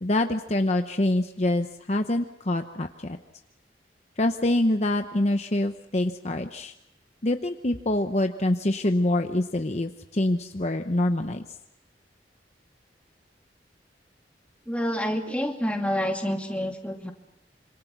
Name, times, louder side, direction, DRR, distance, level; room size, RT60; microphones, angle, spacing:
voice 1, 0.0-3.2 4.2-6.7 7.2-11.4, left 1 dB, 40° left, 6 dB, 0.9 m, -25 dB
voice 2, 14.7-17.1, equal, 5° left, 2 dB, 2.4 m, -28 dB
26.5 x 26.0 x 6.1 m, 0.82 s
head